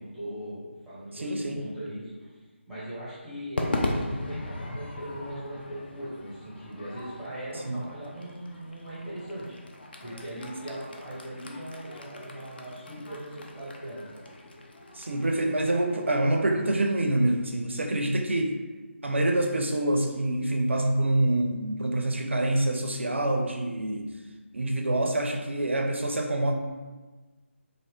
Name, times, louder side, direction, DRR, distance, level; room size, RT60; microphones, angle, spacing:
voice 1, 0.0-9.6 10.0-14.3 17.7-17.9, right 1 dB, ahead, -11 dB, 0.7 m, -40 dB
voice 2, 1.2-1.6 7.7-7.8 15.0-18.6 19.0-24.1 24.5-26.5, right 1 dB, 65° right, 3 dB, 0.4 m, -26 dB
Crowd / Fireworks, 3.6-18.0, left 1 dB, 50° left, 0.4 m, -38 dB
2.8 x 2.6 x 3.2 m, 1.3 s
figure-of-eight pair, 155°, 7 cm